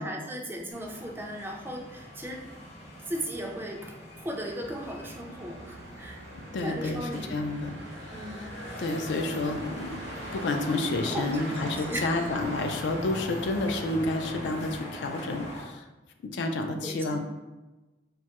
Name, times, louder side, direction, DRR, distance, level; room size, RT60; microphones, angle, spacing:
voice 1, 0.0-2.4 3.1-6.2 6.6-7.4 8.1-8.5 11.0-11.5 11.9-12.4 16.8-17.2, right 1 dB, 15° right, 1 dB, 0.3 m, -36 dB
sound 1, 0.7-15.6, equal, 40° left, 0.6 m, -42 dB
Motor vehicle (road), 4.6-14.7, right 1 dB, 80° right, 0.5 m, -44 dB
voice 2, 6.3-7.8 8.0-8.5 8.8-10.0 10.3-15.9 16.2-17.2, left 2 dB, 75° left, 5 dB, 0.3 m, -30 dB
3.0 x 2.3 x 2.8 m, 1.1 s
head